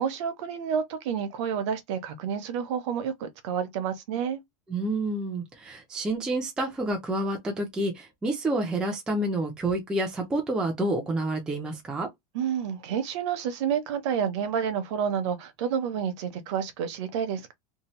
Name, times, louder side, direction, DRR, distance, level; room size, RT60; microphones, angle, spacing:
voice 1, 0.0-4.4 12.3-17.5, right 7 dB, 55° right, 0.7 m, -29 dB
voice 2, 4.7-12.1, right 1 dB, 5° right, 0.3 m, -29 dB
2.7 x 2.0 x 2.9 m
supercardioid pair, 175°, 18 cm